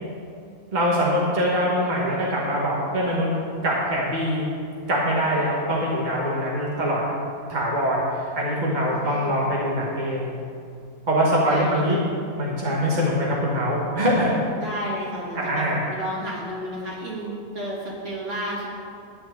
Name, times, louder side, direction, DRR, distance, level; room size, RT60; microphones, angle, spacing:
voice 1, 0.7-3.2 3.6-4.5 4.9-7.0 7.5-10.3 11.1-12.0 12.4-14.4 15.3-15.8, equal, 30° right, -4 dB, 1.4 m, -23 dB
voice 2, 8.9-9.4 11.4-12.0 14.6-18.7, equal, 55° right, -5 dB, 2.5 m, -32 dB
11.5 x 4.3 x 8.1 m, 2.4 s
omnidirectional pair, 1.6 m